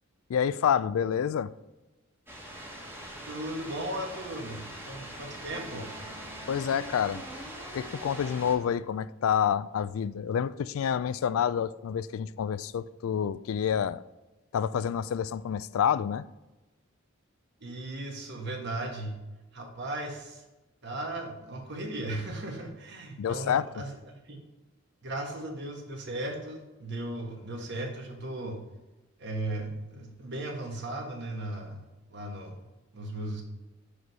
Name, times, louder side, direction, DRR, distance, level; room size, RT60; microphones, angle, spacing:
voice 1, 0.3-1.5 6.5-7.2 7.7-14.0 14.5-16.3 23.2-23.6, left 8 dB, 85° left, 0.3 m, -28 dB
sound 1, 2.3-8.5, right 1 dB, 10° right, 1.2 m, -42 dB
voice 2, 3.3-5.9 17.6-19.1 19.5-20.4 20.8-24.0 24.2-24.4 25.0-28.6 29.2-32.6 32.9-33.4, right 1 dB, 55° right, 1.4 m, -36 dB
6.3 x 5.0 x 5.4 m
head